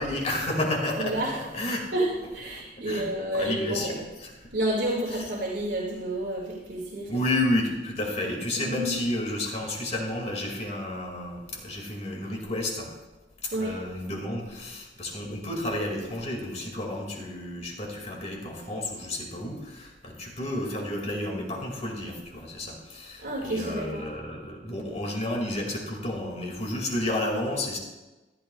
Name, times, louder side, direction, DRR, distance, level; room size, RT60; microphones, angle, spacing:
voice 1, 0.0-1.9 2.5-4.5 5.1-5.3 7.1-12.9 13.4-27.8, left 1 dB, 40° left, 1 dB, 2.2 m, -31 dB
voice 2, 1.0-1.3 1.9-4.0 4.5-7.1 8.7-8.9 13.5-13.8 23.2-24.0, right 1 dB, 85° right, -4 dB, 2.2 m, -29 dB
14.5 x 11.5 x 2.4 m, 1.1 s
head